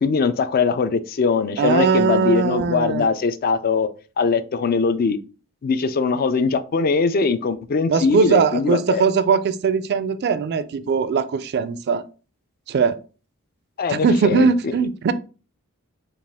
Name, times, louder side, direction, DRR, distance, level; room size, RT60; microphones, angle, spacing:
voice 1, 0.0-3.9 4.2-5.2 5.6-9.0 13.8-14.5, left 5 dB, 45° left, 12 dB, 0.4 m, -21 dB
voice 2, 1.6-3.1 7.9-12.0 12.7-13.0 13.9-15.1, right 5 dB, 50° right, 14 dB, 0.3 m, -20 dB
5.1 x 2.4 x 3.4 m, 0.35 s
head